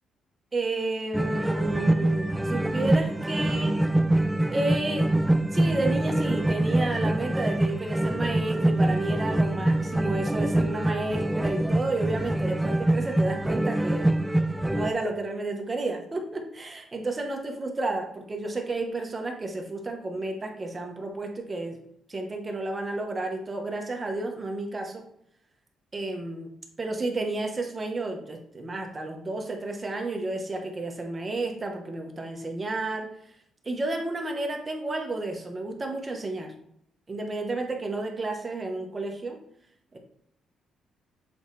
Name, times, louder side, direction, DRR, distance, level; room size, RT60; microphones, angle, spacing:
voice 1, 0.5-3.8 4.5-5.3 5.5-14.2 14.7-21.8 22.1-25.0 25.9-26.5 26.8-33.1 33.6-36.5 37.1-39.4 39.9-40.0, right 2 dB, 25° right, 3 dB, 1.2 m, -31 dB
sound 1, 1.1-14.9, right 1 dB, 5° right, 0.3 m, -25 dB
7.2 x 4.0 x 3.3 m, 0.70 s
cardioid pair, 90°, 0 cm